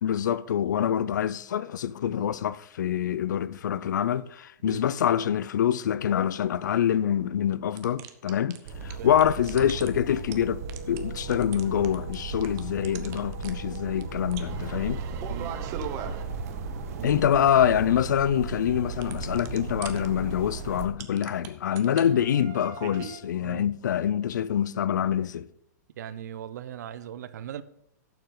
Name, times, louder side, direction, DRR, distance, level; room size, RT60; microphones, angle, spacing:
voice 1, 0.0-10.6 10.9-15.0 17.0-25.5, left 9 dB, 85° left, 0.5 m, -25 dB
sound 1, 7.8-8.9 9.2-9.9 10.2-10.3 10.7-12.1 12.4-13.5 13.7-13.8 14.0-14.1 14.3-16.2 18.9-20.1 21.0-21.5 21.7-23.2, right 9 dB, 30° right, 0.9 m, -39 dB
sound 2, 8.7-20.9, right 4 dB, 55° right, 1.1 m, -36 dB
voice 2, 15.3-15.6 17.0-17.5 21.8-22.1 23.4-23.7 26.0-27.6, right 10 dB, 70° right, 0.7 m, -39 dB
11.5 x 7.2 x 3.8 m
hypercardioid pair, 150°, 10 cm